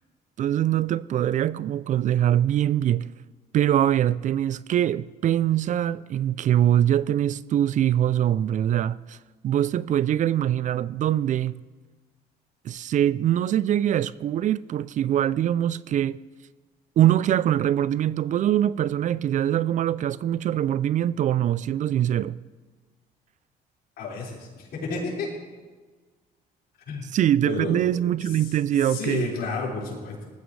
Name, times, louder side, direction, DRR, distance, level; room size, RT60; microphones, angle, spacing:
voice 1, 0.4-3.1 3.5-9.2 9.4-11.6 12.6-16.2 17.0-22.4 27.1-29.3, right 11 dB, 50° right, 0.4 m, -23 dB
voice 2, 24.0-25.3 26.9-27.1 27.4-28.1 28.8-30.3, left 3 dB, 70° left, 5.2 m, -31 dB
19.0 x 14.0 x 3.3 m
cardioid pair, 110°, 17 cm